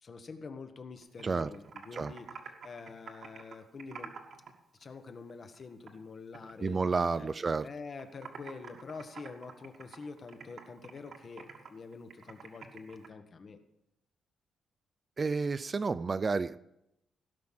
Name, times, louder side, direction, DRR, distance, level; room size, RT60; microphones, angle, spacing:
voice 1, 0.0-2.3 2.6-4.1 4.8-6.8 7.2-7.3 7.6-13.6, left 4 dB, 40° left, 8 dB, 1.2 m, -46 dB
Computer keyboard, 1.0-4.5 4.8-6.0 6.3-7.6 7.9-13.1, right 6 dB, 60° right, 1.8 m, -48 dB
voice 2, 6.6-7.7 15.2-16.6, right 4 dB, 30° right, 15 dB, 0.3 m, -30 dB
17.0 x 5.9 x 7.5 m, 0.83 s
cardioid pair, 140°, 0 cm